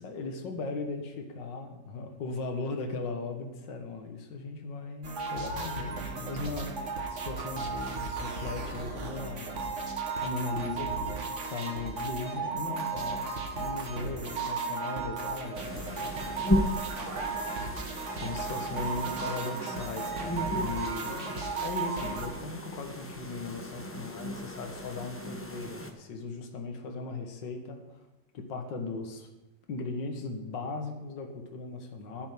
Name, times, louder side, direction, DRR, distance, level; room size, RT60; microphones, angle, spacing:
voice 1, 0.0-9.6 10.2-17.2 18.1-28.0 28.3-29.3 29.7-32.3, left 3 dB, 60° left, 4 dB, 2.1 m, -38 dB
sound 1, 5.0-22.3, right 4 dB, 40° right, 1.7 m, -35 dB
sound 2, 15.5-25.9, left 1 dB, 20° left, 0.3 m, -36 dB
10.5 x 7.1 x 9.1 m, 1.0 s
omnidirectional pair, 2.2 m